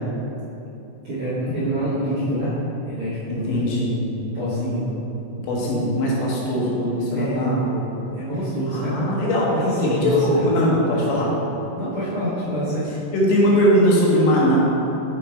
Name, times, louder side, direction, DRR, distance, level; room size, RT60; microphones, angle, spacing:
voice 1, 1.0-2.5 2.8-3.5 4.3-4.8 7.1-7.5 8.1-9.0 9.5-10.5 11.8-12.9, right 1 dB, 75° right, -13 dB, 1.2 m, -26 dB
voice 2, 3.3-4.0 5.3-7.9 8.7-11.3 13.1-14.6, equal, 90° left, -5 dB, 3.5 m, -20 dB
7.9 x 3.5 x 4.4 m, 3.0 s
omnidirectional pair, 5.0 m